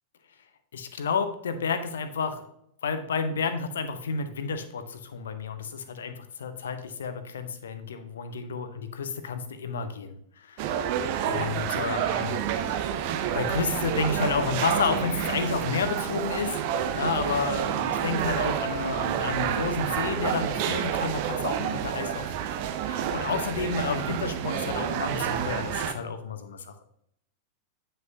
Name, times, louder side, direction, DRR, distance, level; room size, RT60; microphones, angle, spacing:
voice 1, 0.7-2.5 2.8-10.9 11.2-12.4 13.3-16.6 16.9-22.2 22.8-26.7, left 5 dB, 65° left, 10 dB, 0.7 m, -31 dB
sound 1, 10.6-25.9, right 9 dB, 45° right, 0.6 m, -29 dB
9.2 x 5.5 x 2.7 m, 0.74 s
figure-of-eight pair, 90°, 0 cm